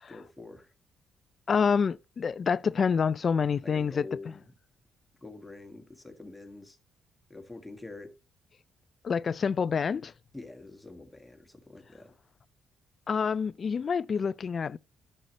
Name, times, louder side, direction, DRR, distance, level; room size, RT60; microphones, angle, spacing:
voice 1, 0.1-0.7 3.6-4.5 5.2-6.8 7.3-8.2 10.3-12.1, left 2 dB, 10° left, 1.8 m, -46 dB
voice 2, 1.5-4.1 9.0-10.1 13.1-14.8, left 6 dB, 45° left, 0.3 m, -27 dB
12.0 x 6.6 x 2.9 m
cardioid pair, 90°, 0 cm